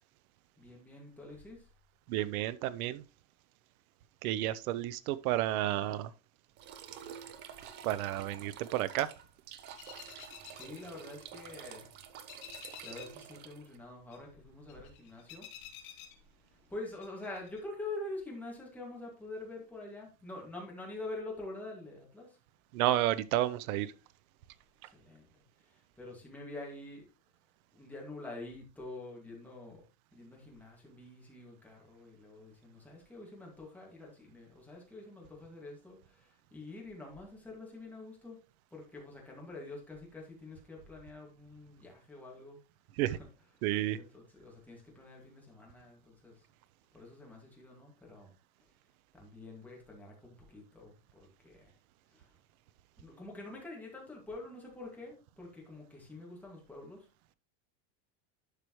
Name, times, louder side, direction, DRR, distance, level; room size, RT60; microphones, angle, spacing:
voice 1, 0.6-1.7 10.5-11.9 12.8-15.5 16.5-22.4 24.8-25.3 25.6-27.1 27.7-29.8 30.1-38.4 38.7-42.6 43.0-43.3 43.6-43.7 43.9-46.5 46.9-48.3 49.1-51.8 52.1-52.4 53.0-57.1, left 2 dB, 5° left, 2.0 m, -46 dB
voice 2, 2.1-3.0 4.2-6.1 7.8-9.1 22.7-23.9 43.0-43.2 43.6-44.0, right 14 dB, 80° right, 0.8 m, -31 dB
sound 1, 6.6-13.8, right 9 dB, 25° right, 0.5 m, -49 dB
sound 2, 9.8-11.8 12.0-13.3 13.5-16.7 17.0-17.6, left 10 dB, 75° left, 2.4 m, -51 dB
11.5 x 4.9 x 3.1 m
cardioid pair, 175°, 42 cm